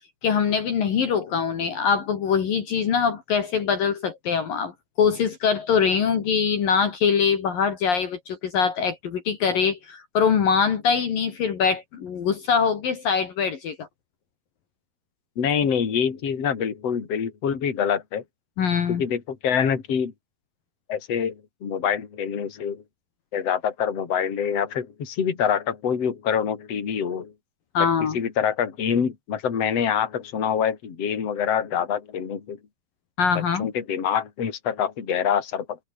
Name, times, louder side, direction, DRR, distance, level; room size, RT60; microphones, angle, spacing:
voice 1, 0.2-4.7 5.0-13.9 18.6-19.0 27.7-28.2 33.2-33.7, left 6 dB, 60° left, 4.0 m, -23 dB
voice 2, 15.4-18.2 19.0-20.1 20.9-21.3 21.6-22.8 23.3-27.3 28.1-32.6 33.6-35.8, left 7 dB, 40° left, 4.1 m, -25 dB
omnidirectional pair, 4.8 m